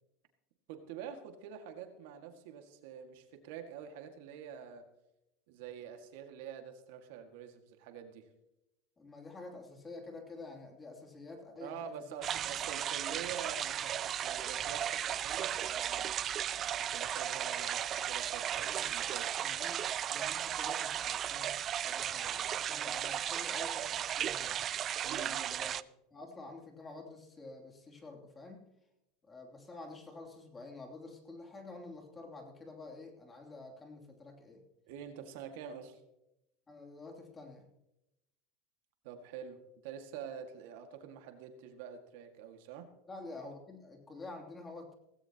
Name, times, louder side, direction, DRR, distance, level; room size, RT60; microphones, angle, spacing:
voice 1, 0.7-4.9 5.5-8.3 11.6-16.2 16.9-19.5 25.0-25.7 34.9-36.0 39.0-42.9, right 8 dB, 75° right, 6 dB, 1.9 m, -47 dB
voice 2, 9.0-12.2 18.6-18.9 19.4-19.8 20.1-24.6 25.1-25.8 26.1-28.7 29.2-34.6 36.7-37.7 43.1-44.9, left 3 dB, 20° left, 2 dB, 2.9 m, -49 dB
sound 1, 12.2-25.8, right 10 dB, 35° right, 0.4 m, -35 dB
17.5 x 16.5 x 2.9 m, 0.87 s
supercardioid pair, 130°, 0 cm